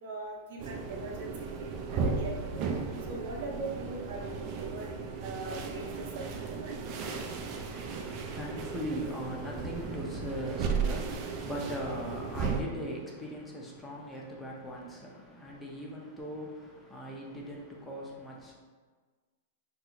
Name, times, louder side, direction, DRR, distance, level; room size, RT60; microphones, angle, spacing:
voice 1, 0.0-2.7 3.1-4.9 5.2-6.8, right 3 dB, 65° right, -1 dB, 0.7 m, -41 dB
sound 1, 0.6-12.6, right 5 dB, 40° right, 0.3 m, -35 dB
voice 2, 7.4-18.5, equal, 10° left, -3 dB, 0.6 m, -40 dB
2.8 x 2.0 x 3.8 m, 1.4 s
hypercardioid pair, 140°, 0 cm